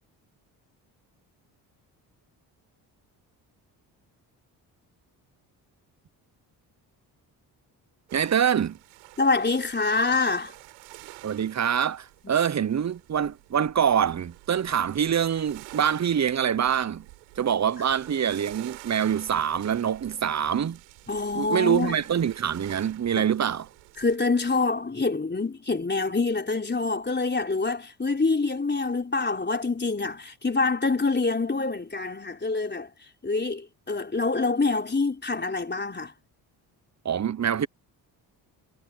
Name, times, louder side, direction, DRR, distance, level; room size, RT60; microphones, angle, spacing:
voice 1, 8.1-8.8 11.2-17.0 17.4-20.8 21.3-23.7 37.0-37.7, right 8 dB, 35° right, 0.9 m, -25 dB
sound 1, 8.1-24.2, right 26 dB, 90° right, 7.6 m, -49 dB
voice 2, 9.2-10.5 21.1-22.0 23.1-23.2 24.0-32.9 33.2-36.1, left 3 dB, 20° left, 4.2 m, -26 dB
supercardioid pair, 55°, 46 cm